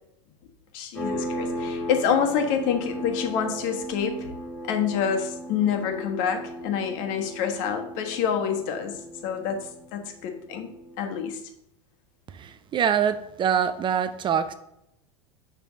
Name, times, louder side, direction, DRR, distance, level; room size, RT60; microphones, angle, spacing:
voice 1, 0.7-4.3 4.7-8.9 9.2-10.7 11.0-11.4, left 7 dB, 55° left, 5 dB, 1.3 m, -27 dB
sound 1, 0.9-11.3, equal, 10° left, 1.8 m, -36 dB
voice 2, 12.3-14.5, right 8 dB, 30° right, 11 dB, 0.5 m, -24 dB
6.8 x 3.4 x 6.2 m, 0.80 s
hypercardioid pair, 100°, 16 cm